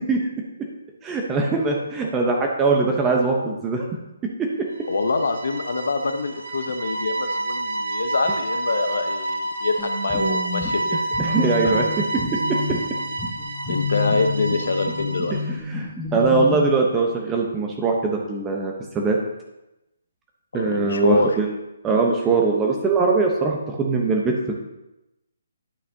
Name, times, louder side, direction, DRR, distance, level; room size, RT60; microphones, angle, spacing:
voice 1, 1.0-3.9 11.2-11.8 15.7-19.2 20.5-21.5 21.8-24.5, right 4 dB, 15° right, 0 dB, 1.0 m, -21 dB
sound 1, 4.7-15.5, right 2 dB, 60° right, 1.2 m, -29 dB
voice 2, 4.9-11.0 11.6-11.7 13.7-15.3 20.5-21.4, left 3 dB, 60° left, 7 dB, 0.9 m, -25 dB
sound 2, 9.8-16.6, left 4 dB, 5° left, 1.4 m, -30 dB
11.5 x 6.5 x 2.8 m, 0.94 s
figure-of-eight pair, 140°, 0 cm